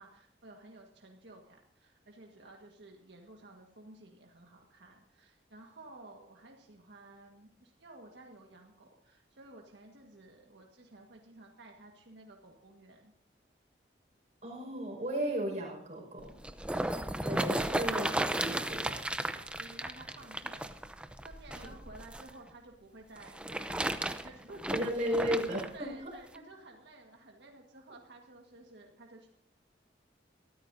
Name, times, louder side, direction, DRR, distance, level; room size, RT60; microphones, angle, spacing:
voice 1, 0.0-13.1 16.9-25.4 25.7-29.3, right 2 dB, 80° right, 0 dB, 1.7 m, -54 dB
voice 2, 14.4-16.3 16.8-18.1 18.4-18.8 24.7-25.9, equal, 40° right, -2 dB, 5.5 m, -34 dB
sound 1, 16.2-22.3 23.2-25.7 26.4-26.5, right 1 dB, 5° right, 0.6 m, -34 dB
23.0 x 13.5 x 2.7 m, 0.66 s
head